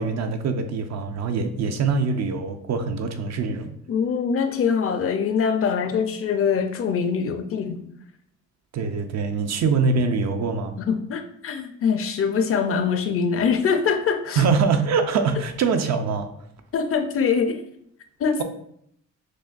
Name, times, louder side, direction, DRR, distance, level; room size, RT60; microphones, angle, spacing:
voice 1, 0.0-3.7 8.7-10.8 14.4-16.3, right 5 dB, 60° right, 6 dB, 0.6 m, -23 dB
voice 2, 3.9-7.9 10.8-14.4 16.7-17.6 18.2-18.4, left 6 dB, 50° left, 8 dB, 0.5 m, -23 dB
6.2 x 2.2 x 2.5 m, 0.69 s
cardioid pair, 90°, 30 cm